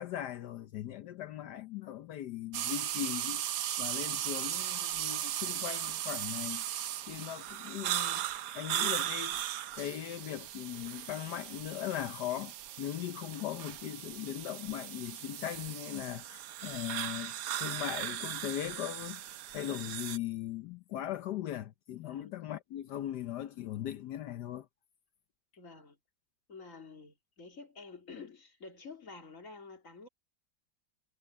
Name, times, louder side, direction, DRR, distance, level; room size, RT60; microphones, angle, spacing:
voice 1, 0.0-3.4 3.8-6.6 7.1-8.3 8.5-9.4 9.7-24.7, left 12 dB, 70° left, 1.3 m, -39 dB
sound 1, 2.5-20.2, right 12 dB, 65° right, 1.0 m, -37 dB
voice 2, 21.9-22.3 25.6-26.0 26.5-30.1, left 4 dB, 45° left, 3.5 m, -50 dB
omnidirectional pair, 1.9 m